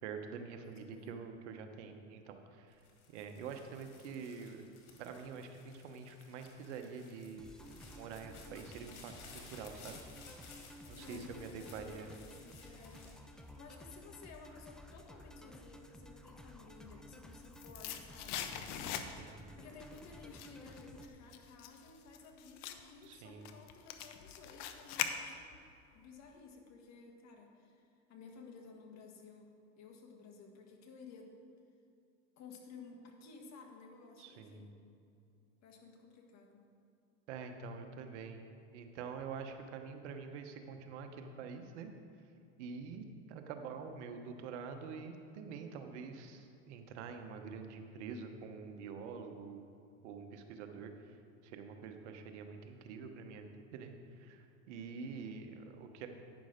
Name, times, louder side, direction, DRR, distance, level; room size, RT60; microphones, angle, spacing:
voice 1, 0.0-2.8 3.1-4.6 5.0-7.5 7.9-9.1 9.5-10.0 10.9-12.1 19.0-19.4 23.0-23.5 34.2-34.7 37.3-38.4 38.7-41.9 42.6-49.6 50.0-51.2 51.4-56.1, right 5 dB, 85° right, 6 dB, 1.0 m, -46 dB
voice 2, 0.6-1.2 10.8-25.5 25.9-29.5 29.8-31.3 32.4-34.7 35.6-36.6, left 4 dB, 50° left, 2 dB, 1.6 m, -55 dB
sound 1, 2.7-14.1 14.6-15.2, left 4 dB, 90° left, 1.8 m, -57 dB
sound 2, 7.4-21.1, equal, ahead, 0.5 m, -54 dB
sound 3, 17.3-19.5 19.8-25.7 26.0-26.1, left 9 dB, 70° left, 0.8 m, -42 dB
9.6 x 6.1 x 5.0 m, 2.5 s
supercardioid pair, 110°, 34 cm